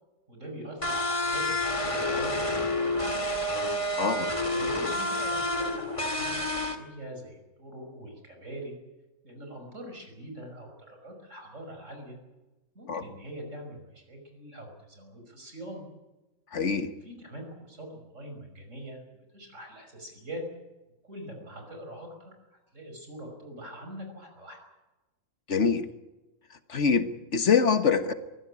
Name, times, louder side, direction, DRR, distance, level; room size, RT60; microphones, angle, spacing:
voice 1, 0.3-3.3 4.4-8.7 9.2-12.2 12.7-15.8 17.0-19.0 19.3-20.4 21.0-24.6, right 1 dB, 55° right, 3 dB, 6.0 m, -43 dB
sound 1, 0.8-6.8, left 1 dB, 20° left, 2.3 m, -29 dB
voice 2, 4.0-4.3 12.9-13.0 16.5-16.9 25.5-25.9 26.7-28.1, left 6 dB, 55° left, 10 dB, 1.6 m, -24 dB
23.0 x 16.0 x 9.9 m, 1.1 s
omnidirectional pair, 1.5 m